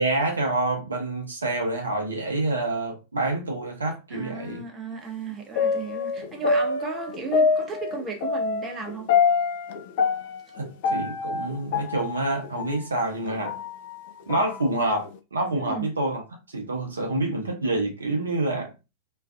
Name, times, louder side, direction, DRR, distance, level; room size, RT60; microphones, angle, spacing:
voice 1, 0.0-4.6 10.6-13.6 14.3-16.2 16.5-18.7, right 2 dB, 75° right, 0.5 m, -27 dB
voice 2, 4.1-9.1 15.6-15.9, right 4 dB, 25° right, 0.7 m, -35 dB
sound 1, 5.6-12.8 13.2-14.6 15.0-15.1, left 5 dB, 50° left, 0.3 m, -25 dB
2.4 x 2.3 x 2.3 m
figure-of-eight pair, 90°, 0 cm